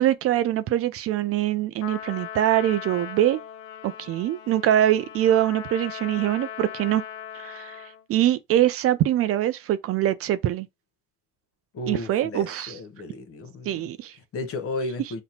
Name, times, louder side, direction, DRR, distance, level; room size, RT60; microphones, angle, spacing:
voice 1, 0.0-3.4 3.8-7.0 7.3-10.7 11.9-12.7 13.7-14.1, right 12 dB, 45° right, 0.4 m, -23 dB
Trumpet, 1.8-8.0, left 9 dB, 80° left, 0.5 m, -39 dB
voice 2, 11.7-13.9 14.3-15.2, left 2 dB, 45° left, 0.8 m, -33 dB
4.0 x 2.1 x 2.8 m
hypercardioid pair, 70°, 32 cm